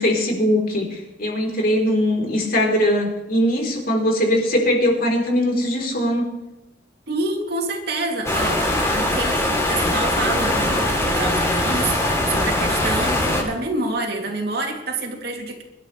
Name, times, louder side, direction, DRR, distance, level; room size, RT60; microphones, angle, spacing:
voice 1, 0.0-6.3, equal, 55° left, 1 dB, 3.9 m, -20 dB
voice 2, 7.1-8.6 8.9-15.6, right 2 dB, 60° right, 1 dB, 2.9 m, -27 dB
sound 1, 8.2-13.4, left 1 dB, 15° left, 3.3 m, -21 dB
24.5 x 12.0 x 3.3 m, 0.96 s
head